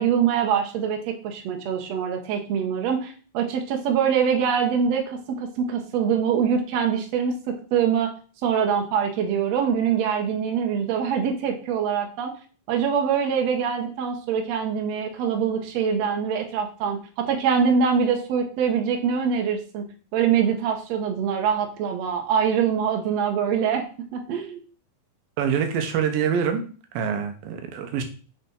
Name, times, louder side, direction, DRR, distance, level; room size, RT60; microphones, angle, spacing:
voice 1, 0.0-8.1 8.4-12.4 12.7-19.8 20.1-23.8 24.1-24.6, right 7 dB, 70° right, 3 dB, 1.6 m, -24 dB
voice 2, 25.4-26.6 26.9-28.0, right 7 dB, 85° right, 6 dB, 2.7 m, -25 dB
7.9 x 4.0 x 3.9 m, 0.40 s
omnidirectional pair, 4.0 m